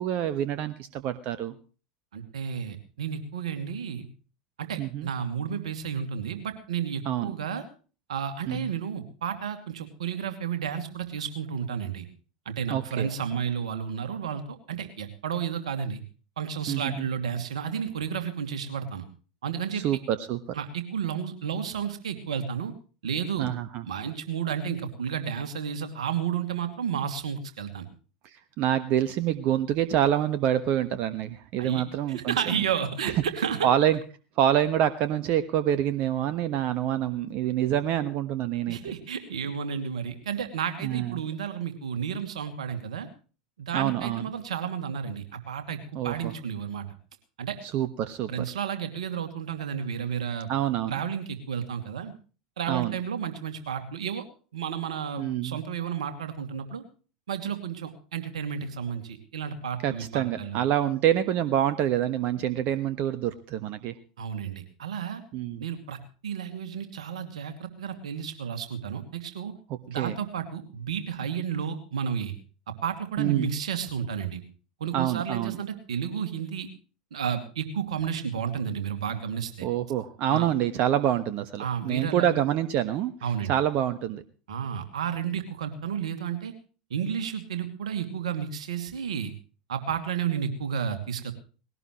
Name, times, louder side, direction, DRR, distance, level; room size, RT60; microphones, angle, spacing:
voice 1, 0.0-1.5 4.8-5.1 7.0-7.3 8.5-8.7 12.7-13.1 16.7-17.1 19.7-20.6 23.4-23.8 28.6-32.7 33.0-33.1 33.6-34.0 34.4-38.8 40.8-41.2 43.7-44.3 45.9-46.3 47.6-48.4 50.5-51.0 52.7-52.9 55.2-55.6 59.8-63.9 65.3-65.6 70.0-70.1 73.2-73.5 74.9-75.6 79.6-83.1 83.5-84.2, right 11 dB, 50° right, 12 dB, 1.3 m, -26 dB
voice 2, 2.1-4.0 4.6-7.6 8.1-12.1 12.5-16.0 16.4-19.1 19.4-19.8 20.5-22.7 23.0-23.5 23.9-27.9 31.6-33.7 38.7-43.1 43.6-46.8 47.4-47.6 48.3-50.5 50.9-52.1 52.6-54.2 54.5-56.8 57.3-60.6 64.2-65.2 65.6-69.5 69.9-72.3 72.8-74.4 74.8-76.7 77.1-79.7 80.3-80.5 81.6-82.3 83.2-83.5 84.5-86.5 86.9-89.3 89.7-91.3, right 7 dB, 75° right, 7 dB, 2.5 m, -32 dB
20.0 x 17.5 x 3.1 m, 0.38 s
figure-of-eight pair, 80°, 4 cm